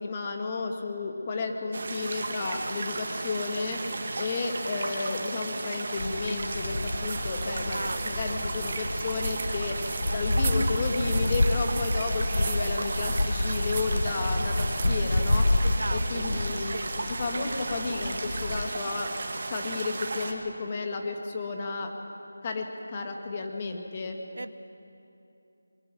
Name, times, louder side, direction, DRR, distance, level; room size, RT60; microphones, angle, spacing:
voice 1, 0.0-3.9 4.2-15.5 15.9-16.8 17.1-19.2 19.5-21.9 22.4-24.2, left 3 dB, 20° left, 3 dB, 1.3 m, -32 dB
sound 1, 1.7-20.3, right 2 dB, 35° right, 1.7 m, -35 dB
sound 2, 6.0-18.7, left 2 dB, 80° left, 1.1 m, -29 dB
sound 3, 6.7-16.4, right 5 dB, 20° right, 0.7 m, -41 dB
voice 2, 7.5-8.4 15.6-16.9 24.3-24.5, right 2 dB, 70° right, 12 dB, 0.9 m, -38 dB
22.5 x 14.0 x 9.3 m, 2.7 s
figure-of-eight pair, 175°, 0 cm